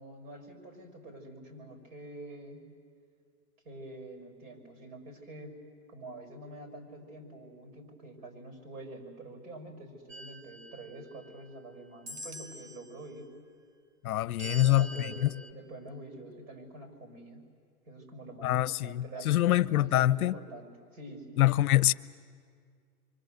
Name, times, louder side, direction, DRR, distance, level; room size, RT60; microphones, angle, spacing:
voice 1, 0.0-2.7 3.6-5.6 5.9-13.3 14.4-17.5 17.9-21.5, right 1 dB, 55° right, 6.2 m, -46 dB
sound 1, 10.1-11.6 12.1-12.9 14.4-15.5, right 1 dB, 20° right, 0.7 m, -45 dB
voice 2, 14.0-15.3 18.4-20.4 21.4-21.9, left 14 dB, 70° left, 0.7 m, -25 dB
29.0 x 24.5 x 7.9 m
hypercardioid pair, 155°, 45 cm